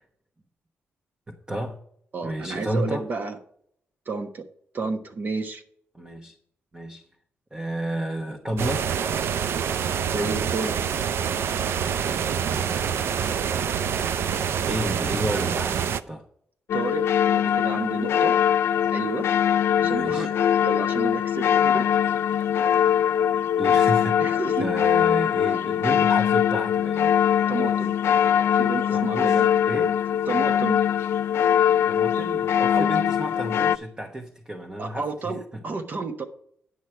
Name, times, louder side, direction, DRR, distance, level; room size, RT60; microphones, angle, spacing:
voice 1, 1.3-1.8 2.2-3.1 5.9-6.3 6.7-7.0 7.5-8.9 12.4-13.2 14.7-16.2 19.8-20.3 23.6-27.1 28.9-30.0 31.9-35.6, right 1 dB, 20° right, 1.0 m, -32 dB
voice 2, 2.1-3.4 4.1-4.4 4.7-5.6 9.8-10.8 16.7-17.0 17.3-18.3 18.9-19.3 19.8-21.9 24.2-24.7 25.4-25.6 27.5-27.9 28.5-29.5 30.3-30.8 32.7-32.9 34.8-36.2, right 3 dB, 50° right, 1.1 m, -31 dB
sound 1, 8.6-16.0, right 7 dB, 70° right, 0.4 m, -26 dB
sound 2, 16.7-33.8, left 9 dB, 75° left, 0.3 m, -22 dB
9.9 x 6.4 x 4.5 m
cardioid pair, 105°, 4 cm